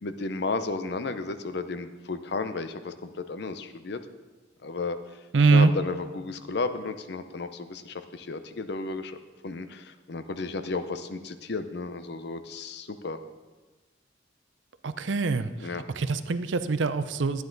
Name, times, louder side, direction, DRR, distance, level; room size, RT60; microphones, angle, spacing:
voice 1, 0.0-4.0 4.6-5.0 5.5-9.2 9.4-13.2 15.6-15.8, left 3 dB, 60° left, 10 dB, 0.6 m, -33 dB
voice 2, 5.3-5.7 14.8-15.5 16.0-17.4, right 4 dB, 80° right, 12 dB, 0.6 m, -23 dB
12.0 x 9.5 x 3.9 m, 1.2 s
head